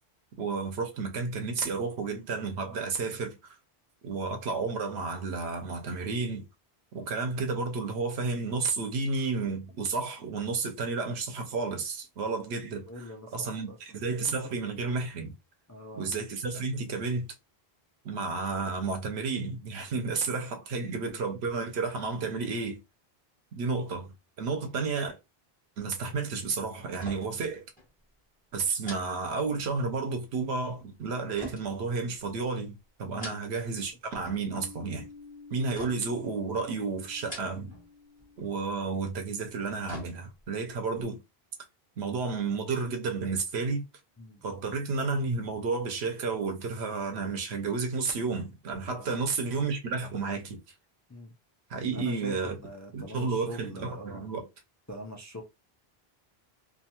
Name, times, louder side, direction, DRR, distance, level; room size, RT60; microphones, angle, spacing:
voice 1, 0.4-3.5 4.0-6.5 6.9-13.0 13.3-15.3 15.9-17.3 18.0-22.8 23.6-25.2 25.8-27.6 28.5-35.1 35.5-37.7 38.4-41.2 42.0-43.8 44.4-50.6 51.7-52.6 52.9-54.5, right 4 dB, 85° right, 1.0 m, -32 dB
voice 2, 12.9-13.8 15.7-16.1 20.7-21.6 33.1-33.5 44.2-44.5 48.9-49.2 51.1-51.3 51.9-54.3 54.9-55.4, equal, 30° left, 0.3 m, -44 dB
sound 1, 27.0-27.5 27.8-27.9 28.8-29.9 31.4-32.5 33.0-33.8 34.1-34.7 35.7-36.3 37.1-37.9 38.2-38.3 39.4-40.6 41.0-41.1, left 1 dB, 10° left, 1.1 m, -46 dB
sound 2, 34.5-40.0, left 4 dB, 45° left, 0.9 m, -52 dB
2.6 x 2.3 x 2.8 m
omnidirectional pair, 1.1 m